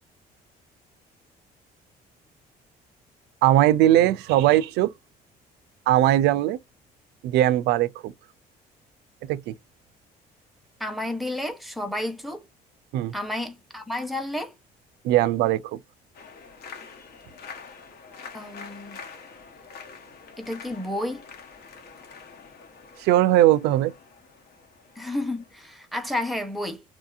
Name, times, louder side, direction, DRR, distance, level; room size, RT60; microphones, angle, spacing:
voice 1, 3.4-4.9 5.9-6.6 7.2-8.1 9.3-9.5 12.9-13.1 15.0-15.8 23.0-23.9, right 13 dB, 85° right, 0.4 m, -20 dB
voice 2, 10.8-12.4 13.1-14.5 18.3-19.0 20.4-21.2 25.0-26.8, left 1 dB, ahead, 0.8 m, -31 dB
sound 1, 16.1-25.8, left 5 dB, 65° left, 1.2 m, -46 dB
3.0 x 2.7 x 2.4 m
cardioid pair, 110°, 17 cm